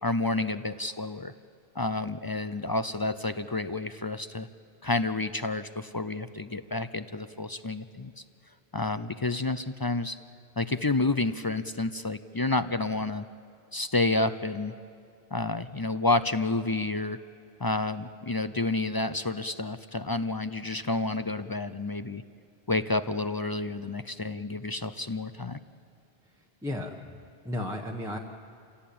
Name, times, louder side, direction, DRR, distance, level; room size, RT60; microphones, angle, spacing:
voice 1, 0.0-1.3 1.8-4.5 4.8-8.2 8.7-10.2 10.6-13.3 13.7-14.7 15.3-17.2 17.6-22.2 22.7-25.6, left 2 dB, 30° left, 12 dB, 0.4 m, -29 dB
voice 2, 26.6-27.2 27.4-28.2, left 1 dB, 5° right, 0 dB, 1.1 m, -34 dB
28.0 x 17.0 x 8.6 m, 2.4 s
omnidirectional pair, 1.1 m